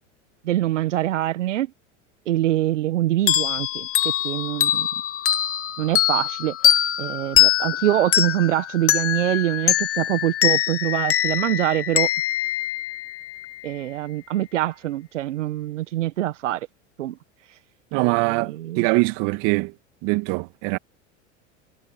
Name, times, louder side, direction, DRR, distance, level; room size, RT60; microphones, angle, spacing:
voice 1, 0.4-1.7 2.2-4.9 5.8-12.1 13.6-16.7 17.0-17.2 17.5-17.6 18.0-18.9, right 14 dB, 80° right, 1.6 m, -24 dB
sound 1, 3.3-13.5, left 12 dB, 35° left, 1.9 m, -23 dB
voice 2, 17.9-19.7 20.0-20.8, right 27 dB, 55° right, 2.2 m, -22 dB
hypercardioid pair, 85°, 37 cm